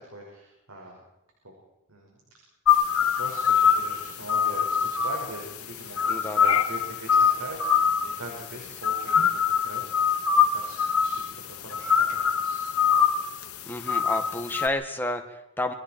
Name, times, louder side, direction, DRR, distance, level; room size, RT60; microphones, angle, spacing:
voice 1, 0.1-1.0 1.4-1.5 1.9-2.2 3.0-12.6, right 1 dB, 75° right, 0 dB, 5.5 m, -42 dB
sound 1, 2.7-14.7, left 7 dB, 90° left, 2.3 m, -24 dB
voice 2, 6.1-6.6 13.7-15.7, left 1 dB, 10° left, 5 dB, 1.9 m, -31 dB
28.0 x 23.5 x 4.6 m, 0.88 s
head